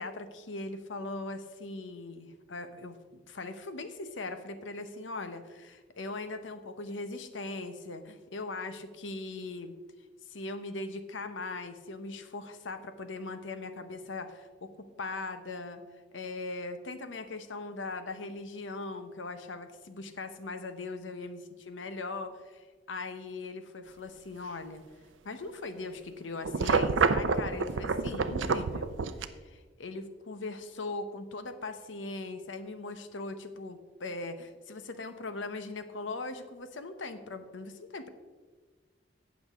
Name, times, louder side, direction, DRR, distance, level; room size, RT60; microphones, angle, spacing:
voice 1, 0.0-9.7 10.3-14.7 15.0-15.8 16.1-21.4 21.7-24.8 25.2-28.9 29.3-38.1, left 3 dB, 85° left, 9 dB, 0.9 m, -40 dB
sound 1, 26.4-29.2, right 4 dB, 90° right, 0.5 m, -28 dB
17.5 x 6.2 x 3.6 m, 1.4 s
head